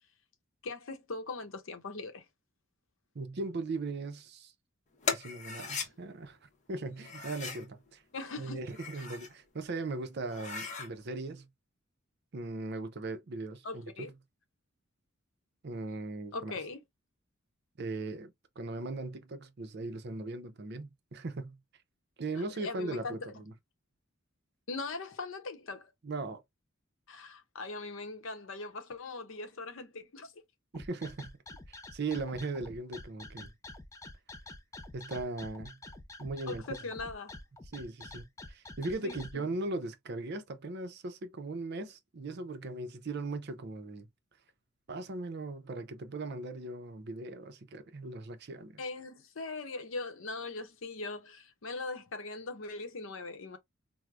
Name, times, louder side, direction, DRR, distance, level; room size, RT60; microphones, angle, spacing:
voice 1, 0.6-2.2 8.1-8.6 9.0-9.1 13.6-14.1 16.3-16.8 22.6-23.4 24.7-25.9 27.1-30.3 36.5-37.4 39.0-39.5 48.8-53.6, left 3 dB, 65° left, 0.7 m, -40 dB
voice 2, 3.1-4.5 5.1-8.0 8.4-11.5 12.3-14.1 15.6-16.5 17.8-21.6 22.2-23.5 26.0-26.4 30.7-31.4 31.7-33.5 34.9-35.8 36.2-36.6 37.7-44.1 44.9-48.8, right 3 dB, 50° right, 0.5 m, -39 dB
sound 1, 5.0-5.9 7.0-7.7 8.6-9.3 9.8-9.9 10.2-10.9, left 5 dB, 35° left, 0.7 m, -37 dB
sound 2, 30.7-39.3, left 2 dB, 15° left, 0.3 m, -47 dB
4.6 x 2.0 x 2.4 m
head